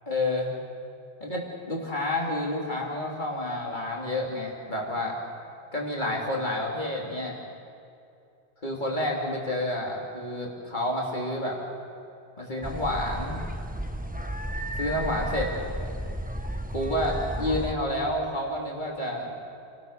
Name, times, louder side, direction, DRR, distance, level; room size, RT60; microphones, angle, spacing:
voice 1, 0.1-0.5 1.2-1.4 1.7-5.1 5.7-7.4 8.6-11.6 12.4-13.4 14.7-15.5 16.7-19.3, left 1 dB, 45° left, -2 dB, 3.2 m, -29 dB
sound 1, 12.6-17.7, equal, 10° right, 1.0 m, -33 dB
29.5 x 18.5 x 6.7 m, 2.5 s
omnidirectional pair, 1.1 m